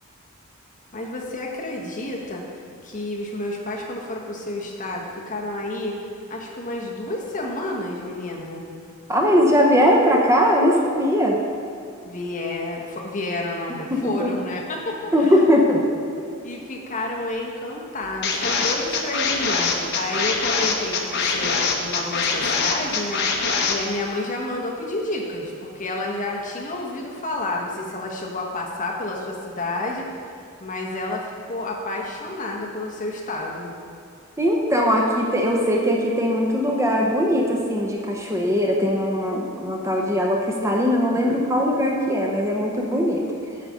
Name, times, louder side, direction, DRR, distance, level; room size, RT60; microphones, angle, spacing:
voice 1, 0.9-2.4 2.8-6.0 6.3-8.6 12.0-15.4 16.4-30.1 30.6-33.7, left 2 dB, 35° left, -2 dB, 1.1 m, -30 dB
voice 2, 9.1-11.4 13.9-14.3 15.1-15.8 34.4-43.2, equal, 15° right, -1 dB, 0.7 m, -20 dB
sound 1, 18.2-23.8, left 5 dB, 55° left, 0.8 m, -23 dB
9.8 x 4.1 x 6.3 m, 2.5 s
head